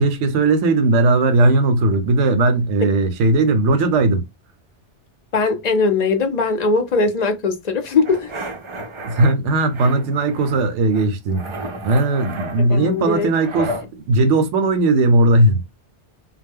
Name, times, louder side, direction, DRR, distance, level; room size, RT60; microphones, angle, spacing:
voice 1, 0.0-4.2 9.0-11.5 11.8-15.6, right 2 dB, 85° right, 0.9 m, -17 dB
voice 2, 5.3-8.3 12.7-13.3, left 4 dB, 50° left, 0.5 m, -20 dB
sound 1, 8.0-9.3 9.7-10.6 10.9-13.9, right 1 dB, 50° right, 0.3 m, -32 dB
2.1 x 2.0 x 3.5 m
omnidirectional pair, 1.2 m